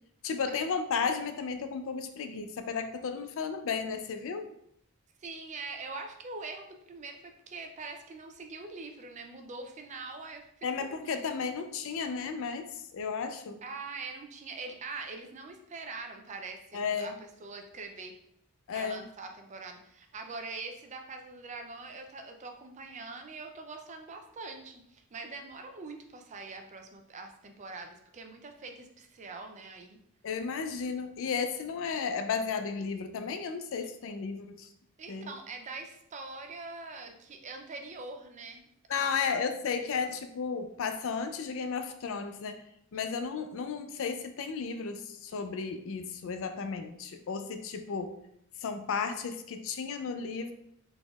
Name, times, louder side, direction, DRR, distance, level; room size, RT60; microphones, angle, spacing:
voice 1, 0.2-4.5 10.6-13.6 16.7-17.2 18.7-19.0 30.2-34.7 35.1-35.3 38.9-42.6 42.9-48.1 48.6-50.5, left 5 dB, 60° left, 7 dB, 0.4 m, -34 dB
voice 2, 5.2-11.2 13.6-18.1 18.7-30.0 35.0-38.6 38.9-39.2 40.0-40.2 42.9-43.1, right 3 dB, 30° right, 4 dB, 0.4 m, -43 dB
4.1 x 3.4 x 2.3 m, 0.72 s
head